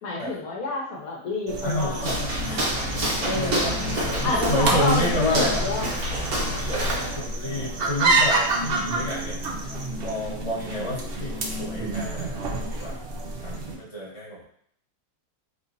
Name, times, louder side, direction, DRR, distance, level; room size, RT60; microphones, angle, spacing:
voice 1, 0.0-2.1 3.2-3.8 4.2-5.9, left 2 dB, 75° left, -2 dB, 1.3 m, -28 dB
sound 1, 1.5-13.8, right 2 dB, 55° right, 0.6 m, -28 dB
voice 2, 1.6-5.6 6.7-9.4 10.0-13.0 13.4-14.4, left 1 dB, 25° left, -5 dB, 1.2 m, -30 dB
Walk footsteps, 2.0-7.2, equal, 80° right, 1.6 m, -28 dB
4.0 x 3.7 x 2.7 m, 0.65 s
omnidirectional pair, 1.6 m